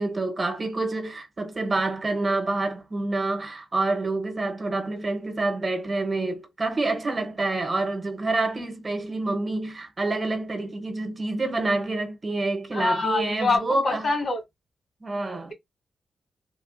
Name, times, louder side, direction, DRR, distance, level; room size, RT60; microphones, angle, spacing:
voice 1, 0.0-14.0 15.0-15.5, right 2 dB, 35° right, 0.9 m, -27 dB
voice 2, 12.7-14.4, left 3 dB, 55° left, 1.9 m, -25 dB
3.1 x 2.3 x 2.5 m
cardioid pair, 70°, 0 cm